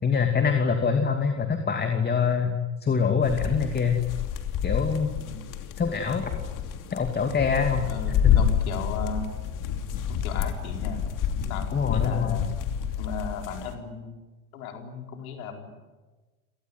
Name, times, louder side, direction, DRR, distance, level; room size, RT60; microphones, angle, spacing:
voice 1, 0.0-4.0 4.6-5.2 5.8-6.3 6.9-8.4 11.7-12.5, left 6 dB, 25° left, 5 dB, 2.6 m, -25 dB
sound 1, 3.2-13.7, left 9 dB, 50° left, 2.9 m, -28 dB
voice 2, 5.2-5.5 7.9-9.3 10.1-11.0 11.4-12.5 13.0-14.2 14.5-15.7, left 4 dB, 85° left, 4 dB, 4.4 m, -36 dB
28.5 x 18.5 x 9.5 m, 1.3 s
supercardioid pair, 105°, 41 cm